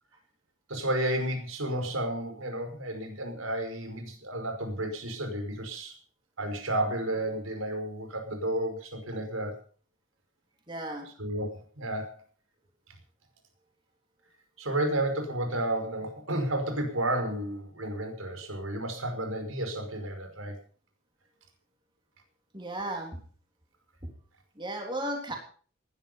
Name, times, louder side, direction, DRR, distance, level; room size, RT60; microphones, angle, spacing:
voice 1, 0.7-5.9 6.4-9.6 11.2-12.2 14.6-20.6, right 1 dB, 90° right, 5 dB, 5.4 m, -32 dB
voice 2, 10.7-11.1 22.5-23.2 24.0-24.1 24.6-25.4, right 1 dB, 25° right, 2 dB, 3.5 m, -35 dB
19.5 x 11.5 x 5.7 m, 0.44 s
head